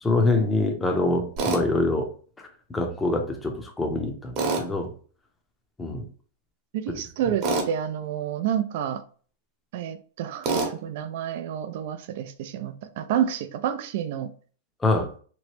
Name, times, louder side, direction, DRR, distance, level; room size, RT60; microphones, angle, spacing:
voice 1, 0.0-2.1 2.7-4.9 5.8-6.1 14.8-15.1, left 2 dB, 10° left, 0.6 m, -25 dB
Tools, 1.4-1.6 4.4-4.7 7.4-7.7 10.4-10.7, right 3 dB, 40° right, 0.9 m, -25 dB
voice 2, 6.7-9.0 9.7-14.3, right 9 dB, 60° right, 0.3 m, -29 dB
3.0 x 2.1 x 3.0 m
hypercardioid pair, 130°, 0 cm